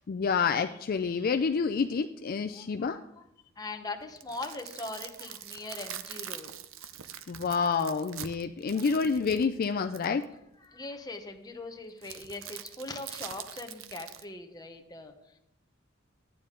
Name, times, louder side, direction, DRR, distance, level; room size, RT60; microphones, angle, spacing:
voice 1, 0.1-3.0 7.3-10.2, left 5 dB, 50° left, 7 dB, 0.4 m, -28 dB
voice 2, 2.5-3.3 3.6-6.6 8.7-8.8 10.6-15.4, left 2 dB, 20° left, 5 dB, 0.9 m, -41 dB
sound 1, 4.0-10.2 12.0-14.2, right 10 dB, 75° right, 0.6 m, -44 dB
11.5 x 9.1 x 3.8 m, 0.80 s
head